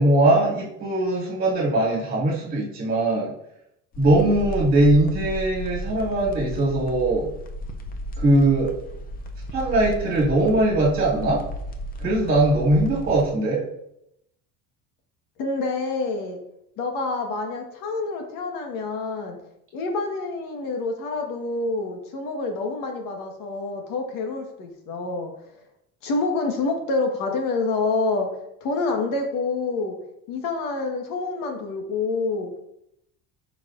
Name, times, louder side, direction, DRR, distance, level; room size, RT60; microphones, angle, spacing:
voice 1, 0.0-3.3 4.0-7.3 8.2-8.7 9.5-11.5 12.0-13.6, right 1 dB, 25° right, -4 dB, 2.1 m, -20 dB
sound 1, 3.9-13.3, equal, 25° left, 0.5 m, -34 dB
voice 2, 15.4-16.4 16.8-19.4 19.7-25.3 26.0-28.3 28.6-30.0 30.3-32.5, left 3 dB, 60° left, 3 dB, 1.5 m, -27 dB
12.0 x 4.9 x 2.5 m, 0.79 s
cardioid pair, 170°, 37 cm